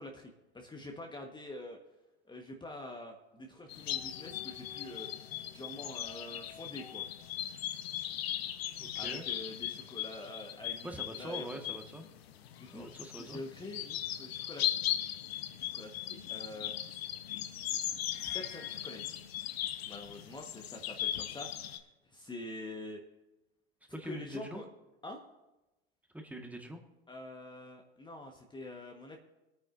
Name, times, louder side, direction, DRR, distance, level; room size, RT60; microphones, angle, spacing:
voice 1, 0.0-1.8 2.3-5.1 5.5-7.0 9.0-11.6 12.6-12.9 13.2-14.8 15.6-16.7 18.2-19.2 19.9-21.8 22.1-23.0 23.9-24.7 25.0-25.2 27.1-29.2, left 1 dB, 15° left, 2 dB, 1.3 m, -46 dB
sound 1, 3.7-21.8, left 12 dB, 70° left, 0.9 m, -38 dB
voice 2, 8.8-9.3 10.8-12.1 12.7-13.4 23.9-24.6 26.1-26.8, right 1 dB, 5° right, 3 dB, 1.5 m, -43 dB
24.5 x 9.2 x 2.6 m, 1.0 s
hypercardioid pair, 85°, 32 cm